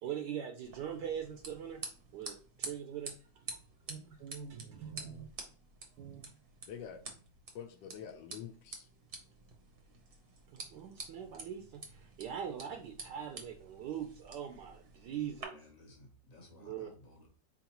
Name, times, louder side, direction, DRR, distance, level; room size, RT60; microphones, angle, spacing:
voice 1, 0.0-1.8 2.1-3.6 3.9-5.3 6.0-6.3 10.5-15.5 16.6-16.9, right 9 dB, 75° right, 1.1 m, -42 dB
sound 1, 0.6-15.4, right 3 dB, 40° right, 0.8 m, -49 dB
voice 2, 4.9-5.3 6.7-7.0 7.5-8.9, left 8 dB, 75° left, 1.2 m, -47 dB
voice 3, 15.5-17.3, left 2 dB, 35° left, 0.6 m, -57 dB
4.2 x 3.8 x 2.9 m
omnidirectional pair, 2.0 m